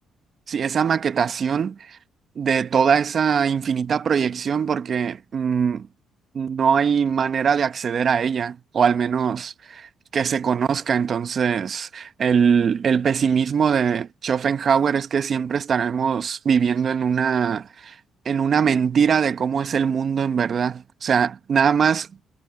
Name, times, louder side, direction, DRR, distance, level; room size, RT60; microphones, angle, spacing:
voice 1, 0.5-2.0 2.4-5.9 6.3-18.0 18.2-22.1, right 7 dB, 50° right, 1.0 m, -22 dB
cardioid pair, 80°, 0 cm